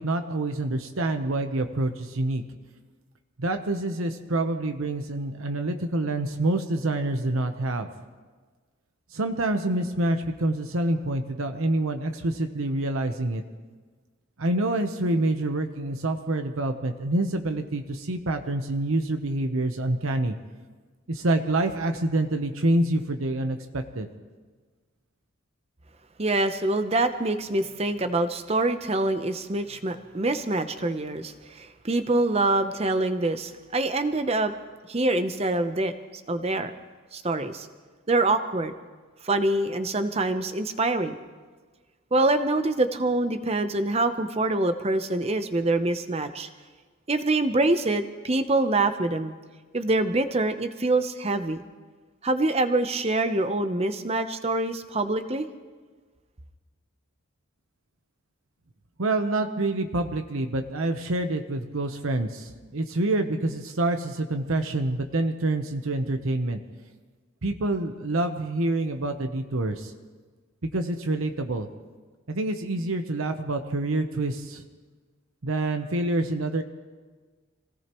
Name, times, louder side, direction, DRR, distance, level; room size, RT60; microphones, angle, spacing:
voice 1, 0.0-2.4 3.4-7.9 9.1-13.4 14.4-20.4 21.1-24.1 59.0-66.6 67.4-69.9 70.6-71.7 72.3-74.6 75.4-76.6, right 2 dB, 75° right, 6 dB, 0.9 m, -27 dB
voice 2, 26.2-34.5 34.9-35.9 36.3-36.7 37.1-37.7 38.1-38.7 39.2-41.2 42.1-46.5 47.1-49.3 49.7-51.6 52.2-55.5, right 2 dB, 30° right, 9 dB, 0.7 m, -25 dB
26.0 x 17.5 x 3.1 m, 1.4 s
head